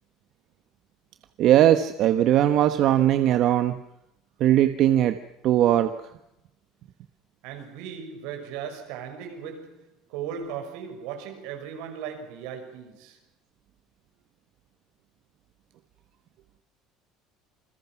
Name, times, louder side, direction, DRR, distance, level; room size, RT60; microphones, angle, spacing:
voice 1, 1.4-3.8 4.4-5.2 5.4-5.9, right 12 dB, 45° right, 1.2 m, -19 dB
voice 2, 7.4-13.2, right 7 dB, 75° right, 5.9 m, -37 dB
28.0 x 22.0 x 6.0 m
cardioid pair, 165°, 0 cm